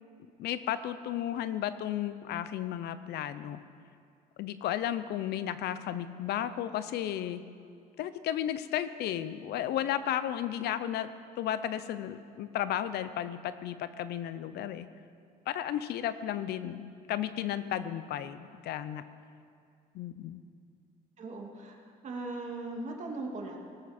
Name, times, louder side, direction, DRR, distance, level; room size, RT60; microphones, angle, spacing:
voice 1, 0.4-3.6 4.4-7.4 8.0-11.1 11.4-14.9 15.5-19.0 19.9-20.4, left 11 dB, 75° left, 13 dB, 0.7 m, -34 dB
voice 2, 21.2-21.8 22.0-23.6, right 2 dB, 45° right, 0 dB, 2.4 m, -38 dB
19.0 x 13.0 x 4.4 m, 2.4 s
cardioid pair, 110°, 17 cm